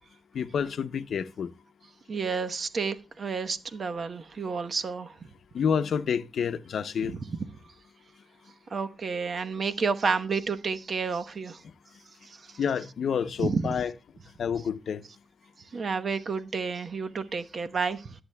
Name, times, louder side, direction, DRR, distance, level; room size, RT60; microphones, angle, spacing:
voice 1, 0.3-1.5 5.5-7.2 12.6-13.9 14.4-15.0, left 7 dB, 80° left, 0.6 m, -28 dB
voice 2, 2.1-5.1 7.0-7.1 8.7-11.6 12.2-12.4 13.4-13.6 15.7-18.1, right 5 dB, 60° right, 1.0 m, -30 dB
22.0 x 7.9 x 2.2 m
cardioid pair, 65°, 0 cm